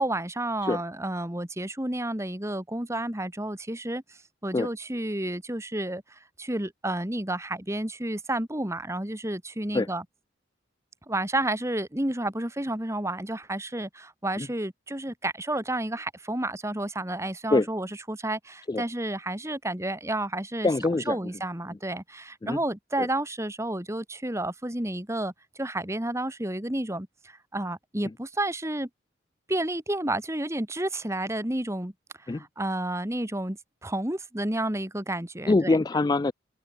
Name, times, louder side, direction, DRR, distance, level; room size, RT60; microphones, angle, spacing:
voice 1, 0.0-4.0 4.4-6.0 6.4-10.0 11.1-20.7 21.1-28.9 29.5-31.9 32.3-35.8, right 1 dB, 15° right, 1.8 m, -31 dB
voice 2, 20.6-21.2 22.4-22.6 23.0-23.1 28.0-28.1 32.3-32.4 35.5-36.3, left 2 dB, 20° left, 0.3 m, -24 dB
head